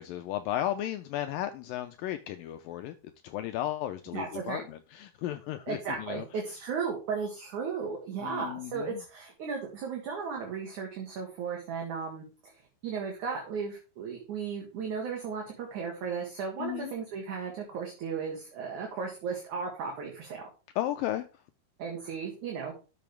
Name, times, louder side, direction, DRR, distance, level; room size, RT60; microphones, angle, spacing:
voice 1, 0.0-2.9 3.2-6.3 8.2-9.0 16.6-16.9 20.8-21.3, left 13 dB, 85° left, 2.0 m, -34 dB
voice 2, 4.1-4.6 5.7-12.5 12.8-20.4 21.8-22.7, right 5 dB, 55° right, 2.8 m, -35 dB
12.5 x 7.0 x 3.4 m
omnidirectional pair, 4.7 m